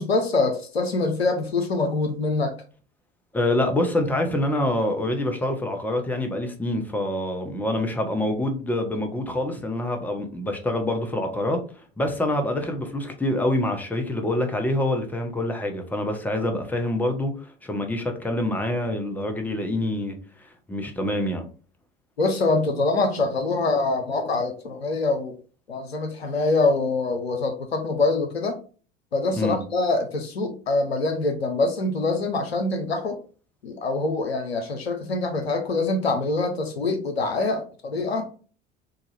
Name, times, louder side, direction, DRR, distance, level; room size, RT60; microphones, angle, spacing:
voice 1, 0.0-2.5 22.2-25.4 25.7-28.6 29.1-33.2 33.6-38.3, left 3 dB, 85° left, 0.6 m, -24 dB
voice 2, 3.3-11.6 12.0-20.2 20.7-21.5 29.3-29.6, left 1 dB, 5° left, 0.7 m, -26 dB
3.9 x 2.3 x 3.1 m
figure-of-eight pair, 65°, 30 cm